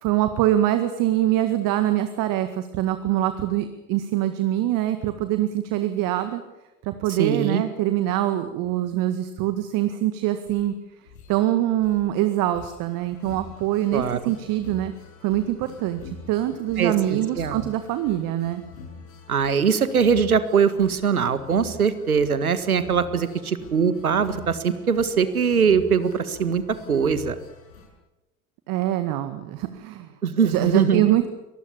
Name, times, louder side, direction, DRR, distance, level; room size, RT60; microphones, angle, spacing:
voice 1, 0.0-6.4 6.8-10.7 11.3-14.9 15.2-18.6 28.7-30.1 30.4-31.3, right 13 dB, 50° right, 9 dB, 1.9 m, -24 dB
voice 2, 7.2-7.6 13.9-14.2 16.8-17.7 19.3-26.6 26.9-27.4 30.2-31.0, right 6 dB, 85° right, 13 dB, 1.9 m, -22 dB
sound 1, 10.5-10.7 11.1-11.4 11.8-12.1 12.4-27.9, left 4 dB, 75° left, 6.9 m, -44 dB
25.0 x 20.0 x 7.2 m, 1.0 s
figure-of-eight pair, 75°, 42 cm